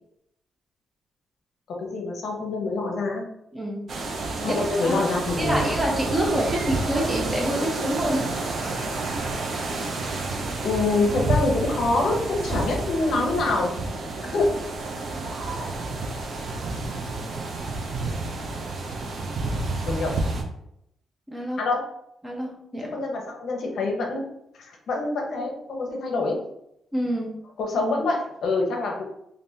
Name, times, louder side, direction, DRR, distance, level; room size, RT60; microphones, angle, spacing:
voice 1, 1.7-3.2 4.4-5.7 10.0-10.1 10.6-13.8 14.3-14.5 19.9-20.1 21.6-21.8 22.9-24.3 24.6-26.4 27.6-29.1, left 3 dB, 60° left, 1 dB, 0.7 m, -25 dB
voice 2, 3.5-3.9 4.4-5.0 5.4-8.3 21.3-21.6 22.2-22.9 26.9-27.4, right 1 dB, 10° right, -1 dB, 0.6 m, -27 dB
sound 1, 3.9-20.4, right 2 dB, 50° right, 0.5 m, -30 dB
3.4 x 2.5 x 2.7 m, 0.77 s
cardioid pair, 150°, 0 cm